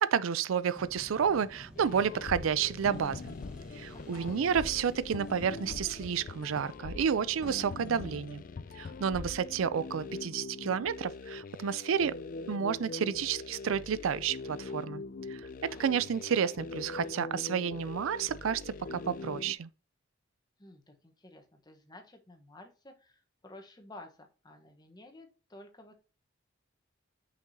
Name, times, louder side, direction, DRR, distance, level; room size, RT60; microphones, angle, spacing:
voice 1, 0.0-3.4 3.7-8.4 8.7-12.1 12.5-15.0 15.3-15.4 15.8-19.7, right 7 dB, 85° right, 0.4 m, -30 dB
sound 1, 0.7-6.8, equal, 5° right, 1.2 m, -51 dB
sound 2, 1.8-19.5, left 3 dB, 45° left, 0.4 m, -42 dB
voice 2, 3.9-4.4 15.7-15.9 20.6-26.0, left 2 dB, 20° left, 1.1 m, -53 dB
6.0 x 5.8 x 2.7 m
head